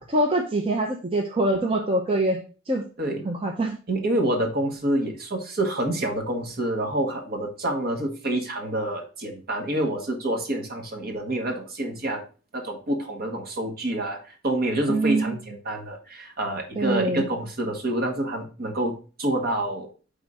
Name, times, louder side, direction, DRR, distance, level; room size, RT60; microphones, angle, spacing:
voice 1, 0.0-2.4 2.7-2.8 3.2-3.8 14.9-15.4 16.8-17.2, right 2 dB, 30° right, 0 dB, 0.7 m, -24 dB
voice 2, 3.9-12.2 12.5-19.9, right 1 dB, 50° right, 2 dB, 1.3 m, -27 dB
4.9 x 3.6 x 5.3 m, 0.36 s
head